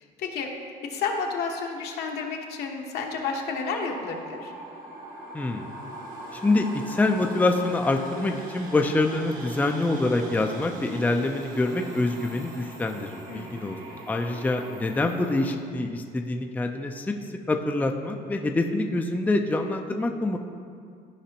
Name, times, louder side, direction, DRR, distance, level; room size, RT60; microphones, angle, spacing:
voice 1, 0.2-0.5 0.9-4.5 13.3-13.7, left 5 dB, 75° left, 1 dB, 1.1 m, -31 dB
sound 1, 3.0-15.5, right 2 dB, 60° right, 1.3 m, -41 dB
voice 2, 5.3-5.7 6.3-13.8 14.1-17.1 17.5-20.4, left 2 dB, 10° left, 4 dB, 0.4 m, -26 dB
13.5 x 5.0 x 2.9 m, 2.3 s
cardioid pair, 110°, 17 cm